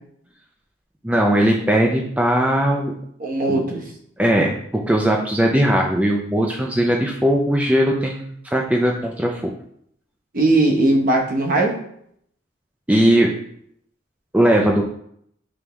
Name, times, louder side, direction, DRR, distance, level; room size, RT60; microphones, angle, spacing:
voice 1, 1.0-2.9 3.5-3.6 4.2-9.5 12.9-13.3 14.3-14.8, right 1 dB, 5° right, 0 dB, 0.4 m, -19 dB
voice 2, 3.2-3.9 10.3-11.8, right 2 dB, 45° right, 1 dB, 0.9 m, -19 dB
5.1 x 3.4 x 3.0 m, 0.69 s
head